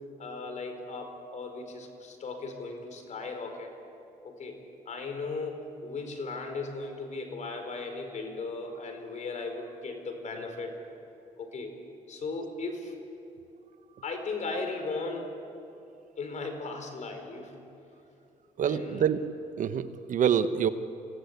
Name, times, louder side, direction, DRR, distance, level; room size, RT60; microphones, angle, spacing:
voice 1, 0.0-3.7 4.2-4.6 4.8-10.7 11.4-11.7 12.1-12.9 14.0-15.3 16.2-17.6 18.7-19.0, left 3 dB, 55° left, 5 dB, 4.7 m, -37 dB
voice 2, 18.6-19.2 19.6-20.7, right 8 dB, 65° right, 11 dB, 1.1 m, -26 dB
26.5 x 17.5 x 8.2 m, 2.7 s
supercardioid pair, 70°, 14 cm